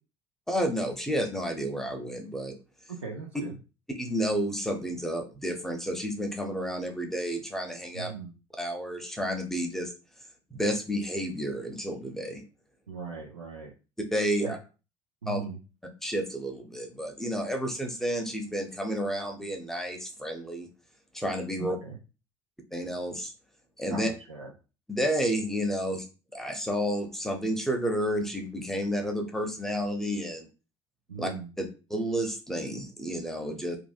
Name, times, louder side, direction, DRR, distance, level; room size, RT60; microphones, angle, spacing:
voice 1, 0.5-2.6 3.9-8.1 8.6-9.9 10.5-12.4 14.1-14.6 15.3-15.4 16.0-20.7 21.1-21.8 22.7-23.3 23.8-24.1 24.9-26.0 26.3-30.5 31.2-31.3 31.6-33.8, equal, 5° left, 3 dB, 0.7 m, -31 dB
voice 2, 3.0-3.6 7.9-8.3 12.9-13.7 14.4-14.5 15.2-15.6 21.6-22.0 23.9-24.5 31.1-31.5, right 5 dB, 90° right, -3 dB, 0.4 m, -39 dB
2.7 x 2.3 x 2.4 m, 0.33 s
figure-of-eight pair, 60°, 15 cm